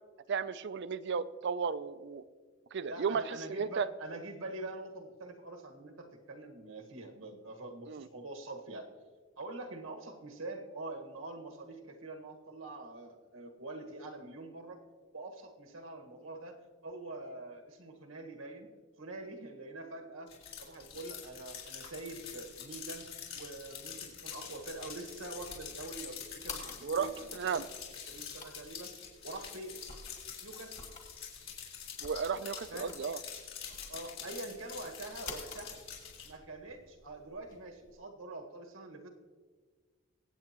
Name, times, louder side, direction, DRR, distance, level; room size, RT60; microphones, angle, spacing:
voice 1, 0.3-2.2 2.7-3.9 7.9-8.1 26.8-27.6 32.0-33.2, right 6 dB, 55° right, 15 dB, 0.4 m, -34 dB
voice 2, 2.9-8.9 9.4-14.8 15.1-16.6 16.8-18.7 19.0-20.3 20.6-23.1 23.3-27.6 27.9-28.9 29.2-29.8 30.4-30.9 32.7-33.0 33.7-35.8 36.2-39.1, right 2 dB, 90° right, 3 dB, 1.6 m, -45 dB
sound 1, 20.3-36.3, left 7 dB, 75° left, 4.0 m, -46 dB
sound 2, 24.1-38.0, left 3 dB, 35° left, 1.7 m, -52 dB
23.5 x 8.4 x 3.0 m, 1.5 s
head